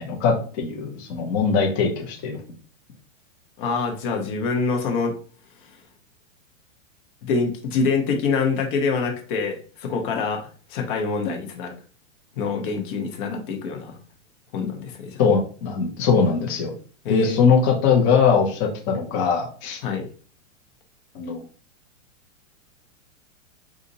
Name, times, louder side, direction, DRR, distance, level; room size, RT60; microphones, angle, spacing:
voice 1, 0.0-2.4 15.2-16.7 17.1-19.8 21.1-21.5, left 5 dB, 20° left, 0 dB, 0.3 m, -21 dB
voice 2, 3.6-5.2 7.2-11.7 12.4-14.0 14.5-15.2 17.0-17.4 19.8-20.1, left 4 dB, 40° left, 3 dB, 0.8 m, -25 dB
3.9 x 2.5 x 2.6 m, 0.41 s
supercardioid pair, 150°, 39 cm